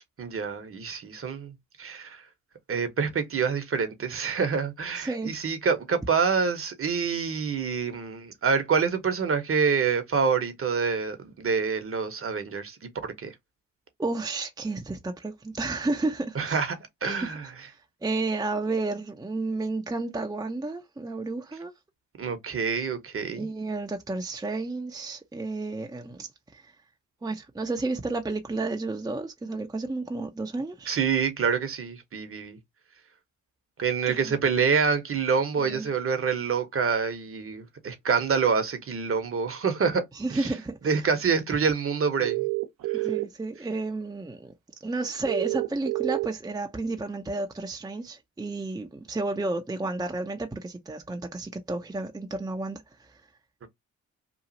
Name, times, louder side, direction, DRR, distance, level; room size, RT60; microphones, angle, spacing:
voice 1, 0.2-1.5 1.8-2.2 2.7-12.8 13.0-13.3 16.4-16.7 17.0-17.4 22.2-23.5 30.9-32.6 33.8-40.0 40.8-42.5 42.9-43.0 53.6-53.7, right 5 dB, 40° right, 0.9 m, -26 dB
voice 2, 4.9-5.3 14.0-16.7 17.0-21.7 23.4-26.7 27.2-30.9 34.1-34.4 35.6-35.9 40.1-41.1 42.9-44.5 44.8-53.2, right 2 dB, 10° right, 0.6 m, -32 dB
sound 1, 42.2-43.2 45.3-46.3, right 22 dB, 70° right, 0.7 m, -28 dB
3.0 x 2.4 x 2.7 m
hypercardioid pair, 50°, 34 cm